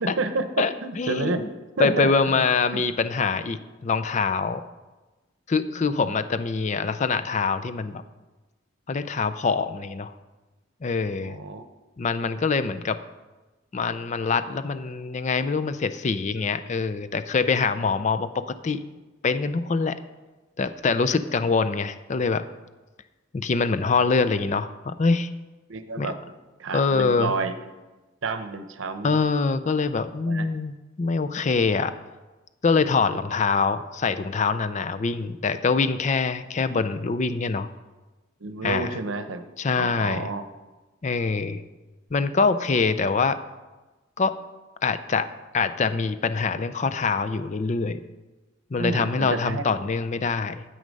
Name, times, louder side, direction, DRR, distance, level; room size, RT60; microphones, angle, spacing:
voice 1, 0.0-1.4 1.8-2.1 11.2-11.7 25.7-26.2 26.6-27.5 28.2-29.2 30.3-30.5 38.4-39.4 39.8-40.4 41.5-41.6 48.8-49.8, right 3 dB, 80° right, 10 dB, 0.8 m, -29 dB
voice 2, 0.6-1.5 1.8-4.6 5.5-8.0 8.9-10.1 10.8-11.4 12.0-13.0 13.7-18.8 19.2-19.9 20.6-22.4 23.3-25.3 26.0-26.1 26.7-27.3 29.0-32.0 32.6-37.7 38.6-39.0 39.6-40.3 41.0-41.6 42.1-43.4 44.2-44.3 44.8-45.3 45.5-48.0 48.7-50.6, left 4 dB, 35° left, 11 dB, 0.4 m, -24 dB
9.6 x 7.9 x 5.3 m, 1.2 s
head